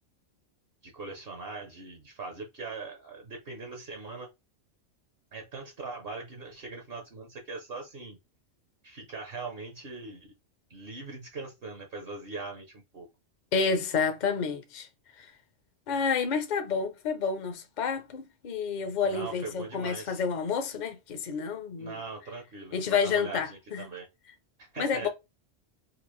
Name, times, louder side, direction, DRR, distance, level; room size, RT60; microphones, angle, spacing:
voice 1, 0.8-4.3 5.3-8.2 8.8-10.3 10.7-13.1 19.0-20.2 21.8-24.1 24.6-25.1, right 4 dB, 50° right, 1.0 m, -41 dB
voice 2, 13.5-14.9 15.2-15.3 15.9-21.9 22.7-23.9 24.8-25.1, left 5 dB, 45° left, 0.7 m, -29 dB
4.1 x 2.5 x 3.0 m
omnidirectional pair, 1.3 m